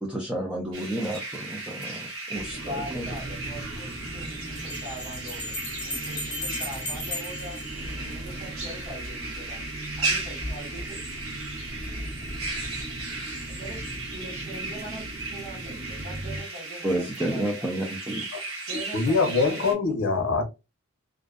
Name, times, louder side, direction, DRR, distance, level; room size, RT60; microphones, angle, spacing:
voice 1, 0.0-3.1 16.8-18.3, right 1 dB, 5° right, 0.3 m, -31 dB
sound 1, 0.7-19.7, right 3 dB, 85° right, 1.0 m, -36 dB
sound 2, 2.3-16.4, right 1 dB, 50° right, 0.9 m, -39 dB
voice 2, 2.6-5.5 5.8-7.6 7.9-9.6 9.9-11.0 13.5-17.9 18.7-19.9, right 1 dB, 30° right, 1.5 m, -41 dB
sound 3, 4.6-8.5, left 2 dB, 20° left, 0.7 m, -36 dB
voice 3, 18.9-20.4, left 4 dB, 75° left, 0.6 m, -23 dB
2.5 x 2.1 x 2.3 m
head